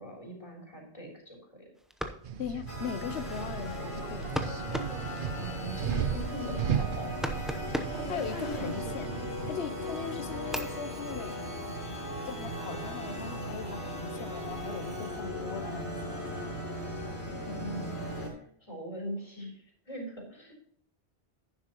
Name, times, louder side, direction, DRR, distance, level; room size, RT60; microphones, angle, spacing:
voice 1, 0.0-1.7 5.3-7.1 7.9-8.7 17.5-20.6, equal, 30° left, -2 dB, 3.6 m, -41 dB
sound 1, 1.8-9.4 9.9-12.5, equal, ahead, 0.6 m, -41 dB
sound 2, 2.2-9.6, right 8 dB, 55° right, 0.8 m, -36 dB
voice 2, 2.4-4.3 8.1-9.1 9.5-11.3 12.2-16.5, left 7 dB, 75° left, 12 dB, 1.0 m, -39 dB
sound 3, 2.7-18.3, equal, 45° left, 2.6 m, -38 dB
11.0 x 10.0 x 3.0 m, 0.63 s
omnidirectional pair, 1.1 m